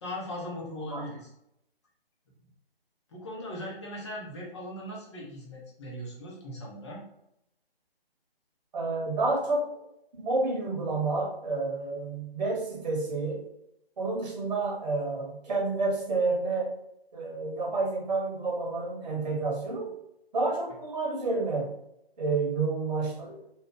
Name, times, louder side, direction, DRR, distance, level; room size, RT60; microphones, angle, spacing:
voice 1, 0.0-1.3 3.1-7.0, left 1 dB, 30° left, -4 dB, 0.7 m, -39 dB
voice 2, 8.7-9.7 10.2-13.4 14.0-16.7 17.1-19.9 20.3-21.7 22.2-23.4, right 3 dB, 45° right, -1 dB, 1.0 m, -29 dB
2.8 x 2.2 x 3.5 m, 0.80 s
figure-of-eight pair, 140°, 30 cm